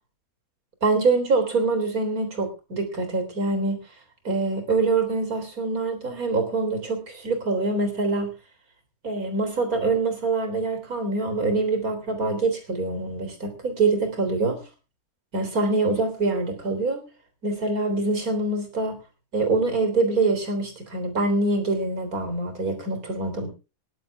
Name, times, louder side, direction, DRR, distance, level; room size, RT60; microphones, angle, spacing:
voice 1, 0.8-3.8 4.2-8.3 9.0-14.6 15.3-17.0 17.4-19.0 19.3-23.5, right 3 dB, 80° right, 6 dB, 3.9 m, -25 dB
19.0 x 11.0 x 3.5 m, 0.32 s
omnidirectional pair, 1.5 m